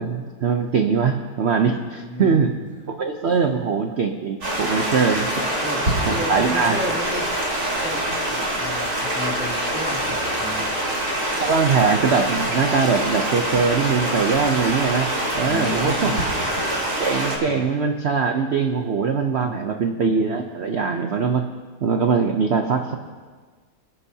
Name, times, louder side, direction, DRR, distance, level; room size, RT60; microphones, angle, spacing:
voice 1, 0.0-2.5 2.9-5.3 6.1-6.8 11.4-15.1 15.3-16.2 17.0-21.4 21.8-22.9, right 5 dB, 75° right, 5 dB, 0.6 m, -22 dB
voice 2, 2.0-2.5 3.2-3.4 5.3-5.8 6.2-7.3 7.8-10.8 15.4-16.2 17.4-17.7 19.4-19.8, left 1 dB, 5° right, -4 dB, 2.5 m, -33 dB
Stream, 4.4-17.4, right 1 dB, 50° right, 4.0 m, -25 dB
26.0 x 11.0 x 2.8 m, 1.5 s
omnidirectional pair, 2.1 m